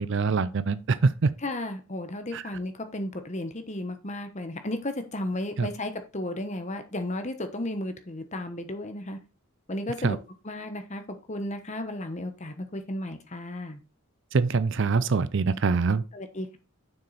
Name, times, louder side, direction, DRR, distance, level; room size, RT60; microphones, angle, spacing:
voice 1, 0.0-1.3 2.3-2.4 5.6-5.7 10.0-10.2 14.3-16.0, right 4 dB, 55° right, 0.5 m, -24 dB
voice 2, 1.4-9.2 9.7-10.2 10.4-11.0 11.3-13.8 16.1-16.6, left 1 dB, 30° left, 1.1 m, -34 dB
7.2 x 6.3 x 4.1 m
head